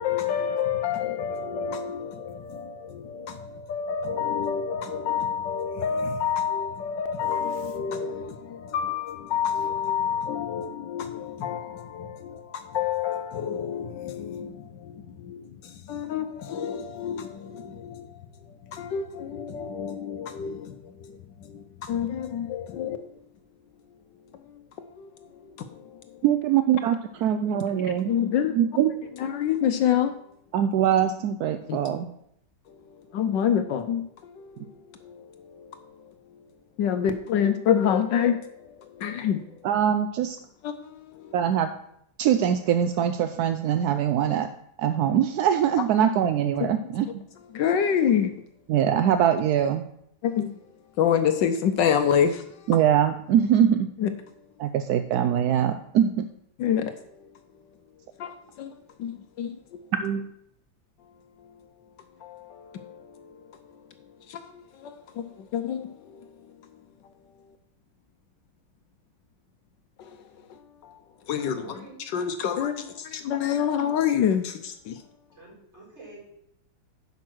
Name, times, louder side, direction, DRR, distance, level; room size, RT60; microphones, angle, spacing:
voice 1, 0.0-18.2 18.7-23.0 24.8-25.1 25.6-26.0 28.1-28.6 29.2-30.1 31.7-31.8 33.1-34.6 35.0-35.8 36.8-39.4 40.6-41.3 46.6-46.7 47.5-48.3 50.2-50.6 51.0-52.4 54.0-54.1 56.6-56.9 58.2-58.7 59.0-59.8 62.2-63.4 64.3-66.3 70.0-70.1 70.8-71.0 71.3-71.6 72.1-75.0, left 8 dB, 70° left, 1.3 m, -28 dB
voice 2, 26.2-28.1 28.5-28.9 30.5-32.1 39.6-40.4 41.3-41.7 42.2-44.5 44.8-47.2 48.7-49.9 52.7-53.9 54.6-56.3 60.0-60.3, right 9 dB, 75° right, 0.9 m, -23 dB
voice 3, 71.3-72.0 75.3-76.2, right 2 dB, 35° right, 4.8 m, -46 dB
10.5 x 5.7 x 6.2 m
omnidirectional pair, 2.1 m